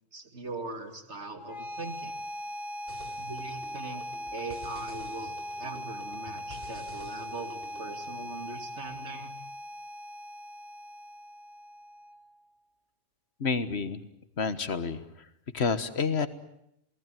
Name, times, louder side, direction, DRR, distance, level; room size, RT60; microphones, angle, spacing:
voice 1, 0.1-2.2 3.2-4.0 4.3-9.4, right 3 dB, 85° right, 6 dB, 2.9 m, -41 dB
sound 1, 1.3-12.3, equal, 45° left, 1.9 m, -40 dB
sound 2, 2.9-8.0, equal, 55° right, 4.2 m, -50 dB
voice 2, 13.4-14.0 14.4-15.0 15.5-16.3, left 5 dB, 70° left, 12 dB, 1.7 m, -28 dB
28.0 x 18.5 x 9.2 m, 0.78 s
omnidirectional pair, 1.1 m